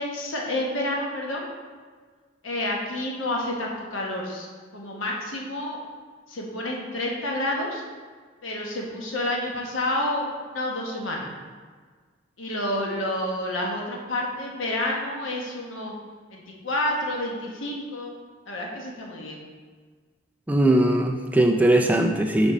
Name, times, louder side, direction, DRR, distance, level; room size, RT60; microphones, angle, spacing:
voice 1, 0.0-1.4 2.4-4.5 4.7-5.8 6.3-7.8 8.4-10.3 10.5-11.3 12.4-15.9 16.3-18.1 18.5-19.4, left 1 dB, 85° left, -1 dB, 1.0 m, -29 dB
voice 2, 20.5-22.5, right 1 dB, 10° right, 3 dB, 0.3 m, -20 dB
6.2 x 5.3 x 4.1 m, 1.5 s
head